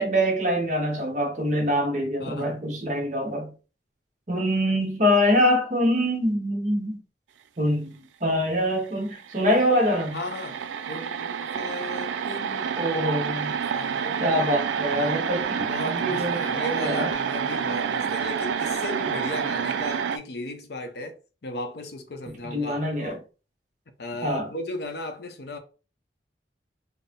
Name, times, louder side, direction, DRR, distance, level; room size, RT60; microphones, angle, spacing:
voice 1, 0.0-3.5 4.3-7.0 7.6-10.2 12.7-13.6 14.2-17.1 22.4-23.2 24.2-24.5, equal, 40° right, 1.0 m, -24 dB
voice 2, 2.2-2.6 10.1-12.9 13.4-14.3 14.9-15.3 15.6-23.2 24.0-25.6, left 1 dB, 60° left, 0.6 m, -36 dB
sound 1, 8.9-9.0 9.2-20.2, right 7 dB, 80° right, 0.4 m, -28 dB
4.2 x 2.0 x 3.5 m
head